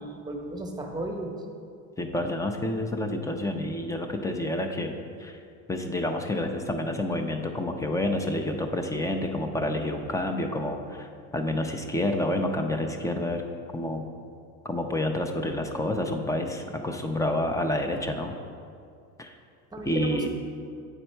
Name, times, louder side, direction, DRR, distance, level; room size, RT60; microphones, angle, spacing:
voice 1, 0.0-1.3 19.7-20.3, right 1 dB, 10° right, 3 dB, 0.9 m, -34 dB
voice 2, 2.0-5.4 5.7-13.4 13.7-14.1 14.6-18.3 19.2-19.4 19.9-20.3, left 1 dB, 10° left, 4 dB, 0.3 m, -29 dB
8.0 x 4.2 x 4.4 m, 2.3 s
supercardioid pair, 95°, 42 cm